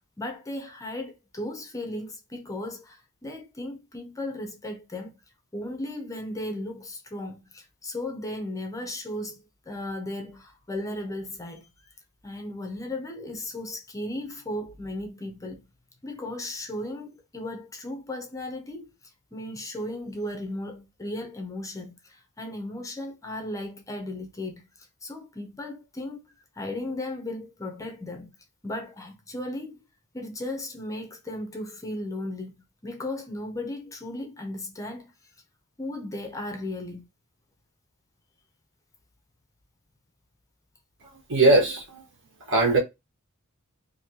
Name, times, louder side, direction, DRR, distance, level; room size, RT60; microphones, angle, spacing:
voice 1, 0.2-5.2 5.5-9.4 9.7-11.7 12.2-15.6 16.0-18.9 19.3-24.6 25.0-26.2 26.6-28.3 28.6-29.8 30.1-32.5 32.8-35.1 35.8-37.1, left 1 dB, 15° left, 0.6 m, -35 dB
voice 2, 41.3-42.0 42.5-42.8, right 2 dB, 60° right, 1.3 m, -19 dB
2.9 x 2.7 x 2.8 m
head